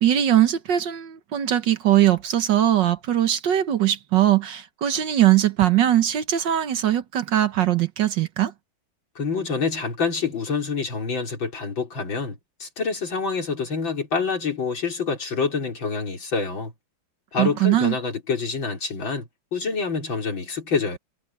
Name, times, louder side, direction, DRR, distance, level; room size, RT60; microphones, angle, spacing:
voice 1, 0.0-8.5 17.4-17.9, right 12 dB, 65° right, 1.7 m, -20 dB
voice 2, 9.2-16.7 17.3-21.0, left 5 dB, 70° left, 4.8 m, -27 dB
omnidirectional pair, 2.2 m